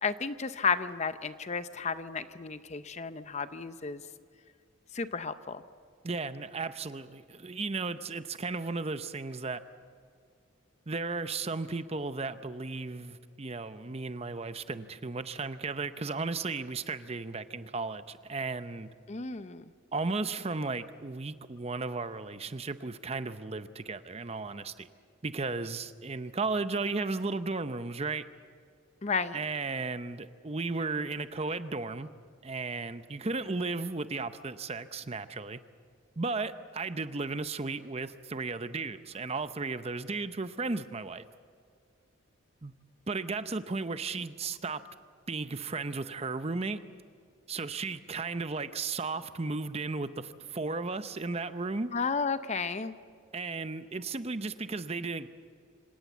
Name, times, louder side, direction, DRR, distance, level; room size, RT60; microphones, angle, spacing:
voice 1, 0.0-4.0 4.9-5.6 19.1-19.6 29.0-29.4 51.9-53.0, left 5 dB, 35° left, 12 dB, 0.6 m, -32 dB
voice 2, 6.0-9.6 10.9-18.9 19.9-24.9 25.2-28.2 29.3-32.1 32.4-35.6 36.2-41.2 42.6-42.7 43.1-44.8 45.3-46.8 47.5-51.9 53.3-55.3, right 3 dB, 30° right, 11 dB, 0.7 m, -35 dB
26.0 x 17.5 x 7.3 m, 2.2 s
head